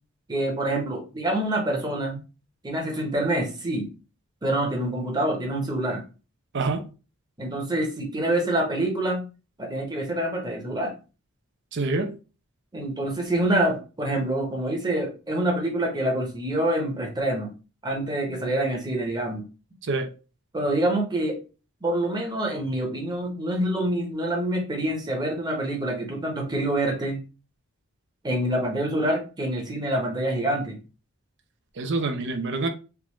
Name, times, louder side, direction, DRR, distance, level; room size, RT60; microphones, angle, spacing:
voice 1, 0.3-2.2 2.6-3.9 4.4-6.0 7.4-9.2 9.6-10.9 12.7-17.5 17.8-19.4 20.5-21.4 21.8-27.2 28.2-30.8, right 1 dB, 20° right, 1 dB, 0.9 m, -26 dB
voice 2, 6.5-6.8 11.7-12.1 19.8-20.1 31.8-32.7, right 3 dB, 55° right, 7 dB, 0.6 m, -26 dB
3.5 x 2.4 x 3.0 m, 0.32 s
head